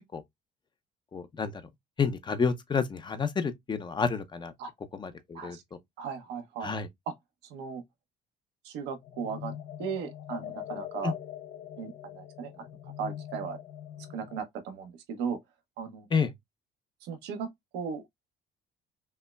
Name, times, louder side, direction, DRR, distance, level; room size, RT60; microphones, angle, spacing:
voice 1, 1.1-1.6 2.0-4.5 4.9-5.6 6.6-6.9 11.0-11.1 16.1-16.3, left 5 dB, 25° left, 0.6 m, -29 dB
voice 2, 6.0-6.7 7.1-7.2 7.5-7.8 8.6-9.5 9.8-11.1 11.8-12.7 13.0-13.6 14.1-15.4 15.8-16.1 17.0-17.5 17.7-18.0, right 6 dB, 90° right, 0.9 m, -36 dB
sound 1, 9.0-14.4, left 11 dB, 70° left, 0.6 m, -42 dB
5.3 x 2.1 x 2.2 m
cardioid pair, 110°, 17 cm